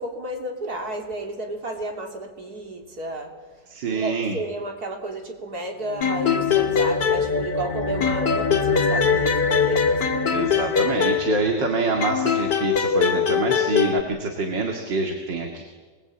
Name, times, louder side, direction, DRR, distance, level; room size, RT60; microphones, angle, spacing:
voice 1, 0.0-3.3 3.9-10.4, right 1 dB, 55° right, 2 dB, 3.8 m, -32 dB
voice 2, 3.7-4.4 10.3-15.6, right 3 dB, 75° right, 3 dB, 2.9 m, -26 dB
sound 1, 5.8-12.5, left 2 dB, 35° left, 0.8 m, -29 dB
sound 2, 6.0-7.7 8.0-11.6 12.0-14.0, left 7 dB, 70° left, 2.4 m, -22 dB
25.5 x 21.0 x 8.8 m, 1.4 s
omnidirectional pair, 2.0 m